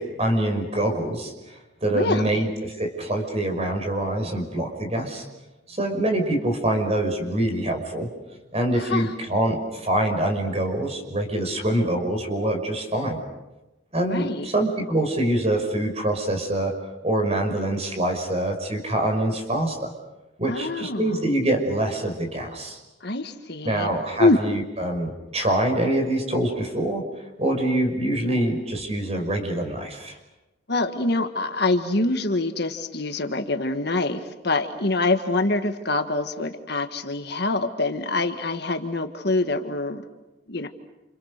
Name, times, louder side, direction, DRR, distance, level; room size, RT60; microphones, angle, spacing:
voice 1, 0.0-5.3 5.7-8.1 8.5-13.2 13.9-16.7 17.0-19.9 20.4-22.8 23.6-27.0 27.4-30.2, right 1 dB, 30° right, 3 dB, 5.4 m, -25 dB
voice 2, 1.9-2.4 8.7-9.1 14.1-14.4 20.5-21.2 23.0-23.9 24.2-24.4 30.7-40.0 40.5-40.7, left 2 dB, 55° left, 7 dB, 1.7 m, -25 dB
29.5 x 29.0 x 6.7 m, 1.0 s
head